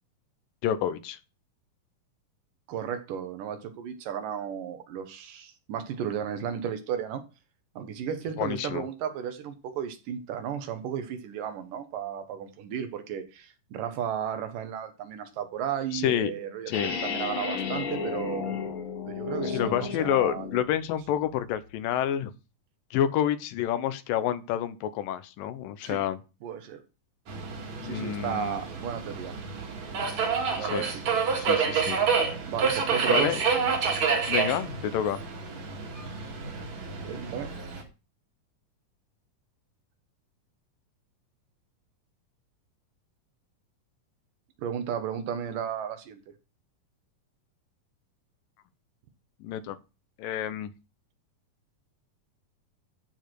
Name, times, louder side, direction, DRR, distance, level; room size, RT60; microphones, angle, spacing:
voice 1, 0.6-1.2 8.4-8.8 15.9-16.3 16.7-17.0 19.4-22.3 22.9-26.2 27.8-28.6 30.6-30.9 31.4-32.0 33.1-33.4 34.3-35.2 49.4-49.8 50.2-50.7, left 10 dB, 80° left, 2.5 m, -29 dB
voice 2, 2.7-7.2 7.8-18.5 19.1-20.6 25.8-26.0 26.4-26.8 27.8-29.3 30.6-31.0 32.5-33.4 37.0-37.5 44.6-46.2, right 8 dB, 75° right, 2.8 m, -34 dB
sound 1, 16.7-20.7, left 5 dB, 55° left, 1.4 m, -33 dB
Subway metro underground, 27.3-37.8, right 5 dB, 55° right, 3.2 m, -28 dB
14.0 x 4.8 x 4.6 m
omnidirectional pair, 4.0 m